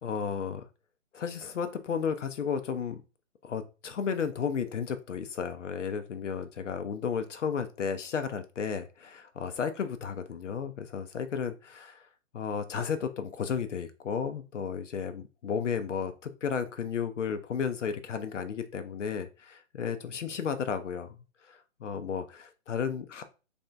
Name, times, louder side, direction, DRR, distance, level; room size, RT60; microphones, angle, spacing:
voice 1, 0.0-0.7 1.1-3.0 3.4-12.1 12.3-21.2 21.5-23.2, left 6 dB, 70° left, 9 dB, 0.6 m, -33 dB
3.4 x 2.7 x 3.3 m, 0.33 s
hypercardioid pair, 145°, 38 cm